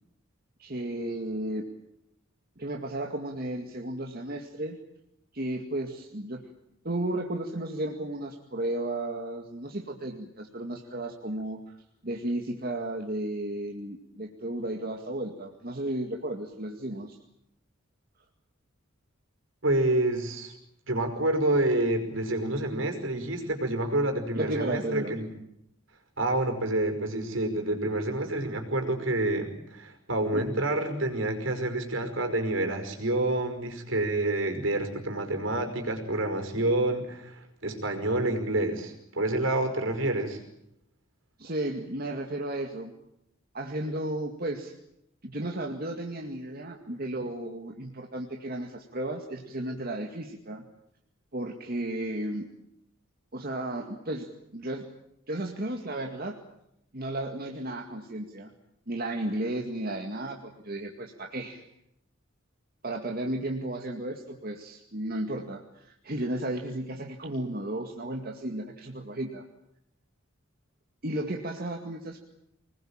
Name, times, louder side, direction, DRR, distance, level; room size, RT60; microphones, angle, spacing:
voice 1, 0.6-1.6 2.6-4.8 5.3-6.5 6.8-11.8 12.0-17.2 24.3-25.1 30.3-30.5 41.4-42.9 43.5-44.7 45.2-50.6 51.3-52.5 53.3-54.9 55.3-56.4 56.9-58.5 58.9-61.6 62.8-69.4 71.0-72.2, right 1 dB, 50° right, 3 dB, 2.2 m, -34 dB
voice 2, 19.6-20.5 20.9-25.3 26.2-40.4, right 1 dB, 70° right, 6 dB, 5.4 m, -28 dB
25.5 x 20.5 x 8.9 m, 0.81 s
head